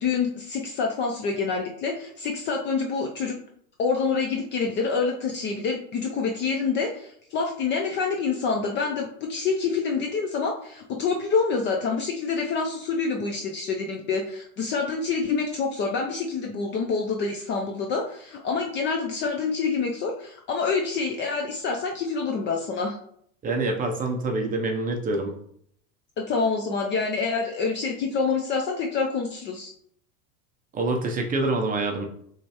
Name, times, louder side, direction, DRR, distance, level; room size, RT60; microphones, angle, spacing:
voice 1, 0.0-3.4 3.8-23.0 26.2-29.7, left 5 dB, 30° left, 2 dB, 0.4 m, -27 dB
voice 2, 23.4-25.3 30.7-32.1, right 2 dB, 20° right, 3 dB, 0.6 m, -26 dB
5.2 x 3.3 x 2.9 m, 0.67 s
supercardioid pair, 125°, 42 cm